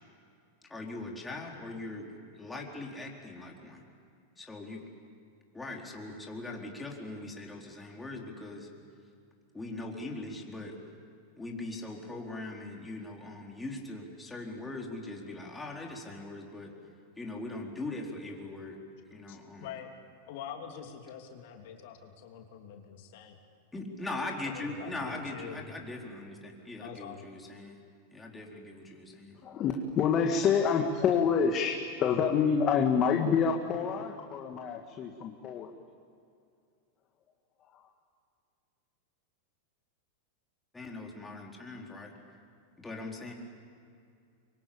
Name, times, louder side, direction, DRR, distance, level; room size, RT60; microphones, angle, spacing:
voice 1, 0.7-2.1 2.4-3.8 4.4-4.8 5.5-8.7 9.5-10.8 11.4-16.7 17.2-18.8 19.1-19.7 23.7-27.8 28.1-29.4 40.7-42.1 42.8-43.3, left 2 dB, 10° left, -1 dB, 4.3 m, -40 dB
voice 2, 19.3-19.9 20.3-23.4 24.4-25.7 26.8-27.2, left 8 dB, 65° left, 3 dB, 2.9 m, -45 dB
voice 3, 29.4-35.7 37.7-37.8, left 6 dB, 35° left, 3 dB, 1.9 m, -27 dB
24.5 x 24.0 x 8.8 m, 2.4 s
hypercardioid pair, 105°, 0 cm